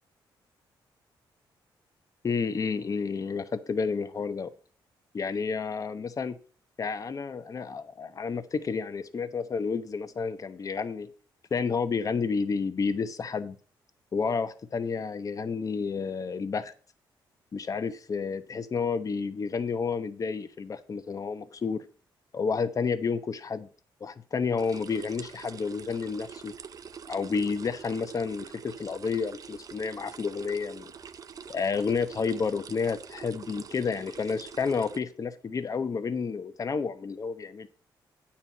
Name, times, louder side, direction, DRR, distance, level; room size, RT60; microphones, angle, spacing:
voice 1, 2.2-4.5 5.1-6.4 6.8-11.1 11.5-13.6 14.1-16.7 17.5-21.9 22.3-23.7 24.0-26.6 27.1-30.9 31.5-37.7, left 5 dB, 40° left, 10 dB, 0.9 m, -30 dB
sound 1, 24.6-35.0, right 6 dB, 45° right, 0.5 m, -45 dB
9.2 x 4.3 x 7.2 m, 0.41 s
cardioid pair, 90°, 9 cm